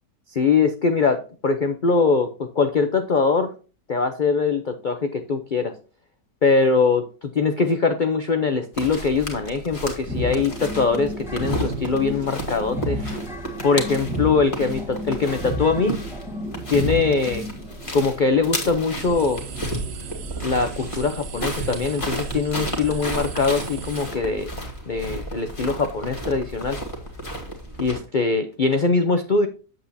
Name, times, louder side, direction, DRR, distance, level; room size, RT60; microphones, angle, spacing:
voice 1, 0.3-3.5 3.9-5.7 6.4-13.2 13.6-16.0 16.7-17.4 17.9-19.4 20.4-24.5 24.9-26.8 27.8-29.5, left 4 dB, 50° left, 7 dB, 0.5 m, -22 dB
sound 1, 8.7-28.0, right 1 dB, 20° left, 2.0 m, -33 dB
sound 2, 10.1-22.7, equal, ahead, 1.9 m, -33 dB
sound 3, 18.9-24.1, right 6 dB, 80° right, 0.5 m, -37 dB
8.4 x 7.8 x 2.7 m, 0.36 s
omnidirectional pair, 1.9 m